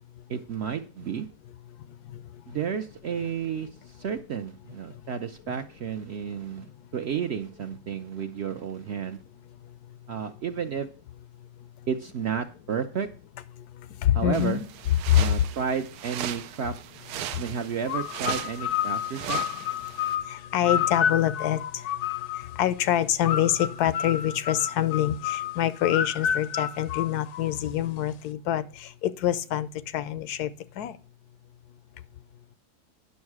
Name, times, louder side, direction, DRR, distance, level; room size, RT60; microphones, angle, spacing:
voice 1, 0.3-1.3 2.5-9.2 10.1-10.9 11.9-13.1 14.1-14.6 15.1-16.7 17.4-19.5, right 7 dB, 65° right, 7 dB, 0.7 m, -32 dB
voice 2, 14.0-14.6 15.1-15.3 20.3-21.6 22.6-29.7 29.9-30.5 30.8-30.9, left 11 dB, 80° left, 15 dB, 1.1 m, -25 dB
sound 1, 14.3-20.2, right 11 dB, 90° right, 1.1 m, -38 dB
sound 2, 17.9-22.6 23.3-27.7, left 9 dB, 65° left, 0.8 m, -30 dB
9.7 x 6.3 x 4.7 m, 0.38 s
omnidirectional pair, 1.6 m